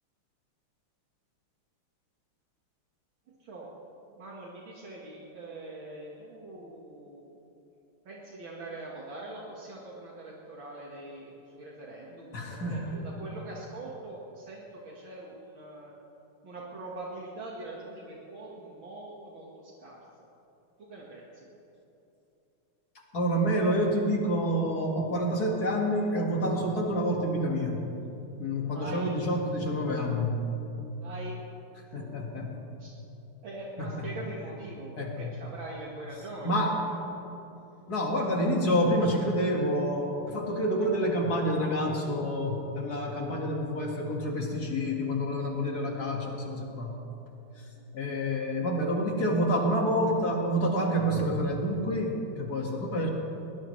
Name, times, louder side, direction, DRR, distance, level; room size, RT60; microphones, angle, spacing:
voice 1, 4.2-7.2 8.1-15.9 16.4-20.0 20.8-21.5 28.7-29.2 31.0-31.4 32.8-32.9 33.4-37.0 48.0-48.3, right 2 dB, 65° right, -4 dB, 2.4 m, -43 dB
voice 2, 12.3-13.0 23.1-27.8 28.4-30.5 31.9-32.6 33.8-34.1 35.0-35.3 36.4-36.8 37.9-46.9 47.6-47.7 47.9-53.1, equal, 45° left, 0 dB, 2.3 m, -28 dB
21.5 x 19.5 x 3.2 m, 2.9 s
omnidirectional pair, 2.4 m